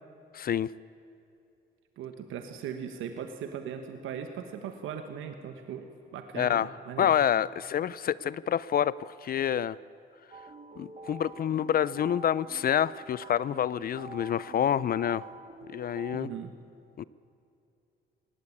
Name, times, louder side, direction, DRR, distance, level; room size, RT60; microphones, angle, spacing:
voice 1, 0.3-0.7 6.4-6.7 7.0-9.8 10.8-15.2 15.7-16.3 17.0-17.1, left 9 dB, 50° left, 20 dB, 0.4 m, -27 dB
voice 2, 2.0-5.8 6.1-7.1 16.1-16.5, right 8 dB, 85° right, 7 dB, 1.3 m, -39 dB
sound 1, 10.3-16.2, right 3 dB, 35° right, 1.5 m, -47 dB
18.5 x 18.0 x 8.5 m, 2.8 s
cardioid pair, 90°, 20 cm